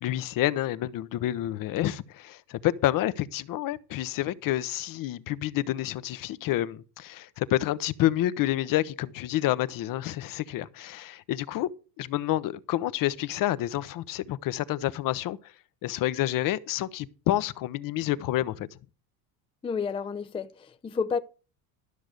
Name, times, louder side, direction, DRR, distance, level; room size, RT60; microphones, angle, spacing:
voice 1, 0.0-11.7 12.0-15.5 15.8-18.7, left 14 dB, 45° left, 0.8 m, -29 dB
voice 2, 19.6-21.2, left 5 dB, 10° left, 0.5 m, -30 dB
13.0 x 6.1 x 6.5 m
supercardioid pair, 105°, 45 cm